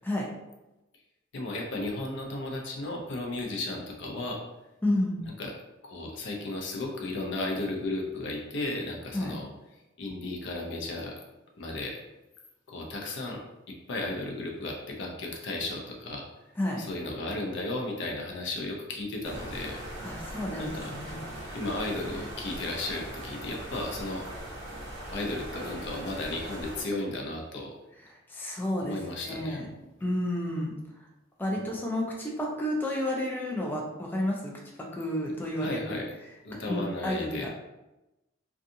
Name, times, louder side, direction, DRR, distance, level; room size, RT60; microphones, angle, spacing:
voice 1, 1.3-4.4 5.4-5.5 5.8-9.5 10.0-11.2 11.6-12.0 12.7-16.3 16.8-19.8 20.6-20.9 21.5-24.3 25.1-27.7 28.8-29.6 31.5-31.6 35.6-36.1 36.4-37.5, left 2 dB, 65° left, 0 dB, 0.5 m, -34 dB
voice 2, 4.8-5.2 9.1-9.3 16.6-16.8 20.0-21.2 28.1-29.7 30.0-30.8 31.4-34.5 34.8-36.0 36.7-37.6, left 1 dB, 10° left, -2 dB, 0.4 m, -31 dB
sound 1, 19.2-26.8, right 1 dB, 65° right, 1.2 m, -40 dB
2.6 x 2.3 x 2.5 m, 0.98 s
head